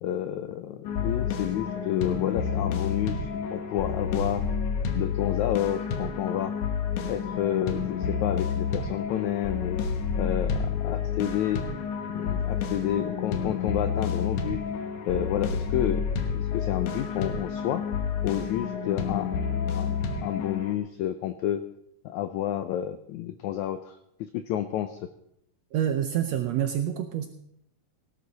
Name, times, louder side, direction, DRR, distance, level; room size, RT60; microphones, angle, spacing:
voice 1, 0.0-4.4 4.9-6.5 7.1-9.8 10.2-11.6 12.1-14.6 15.1-16.0 16.3-17.8 18.2-19.4 19.7-21.6 22.0-25.0, left 11 dB, 85° left, 10 dB, 1.6 m, -30 dB
sound 1, 0.8-20.7, left 6 dB, 65° left, 2.5 m, -29 dB
voice 2, 25.7-27.3, right 10 dB, 85° right, 7 dB, 1.5 m, -27 dB
17.5 x 11.5 x 4.1 m, 0.74 s
omnidirectional pair, 4.0 m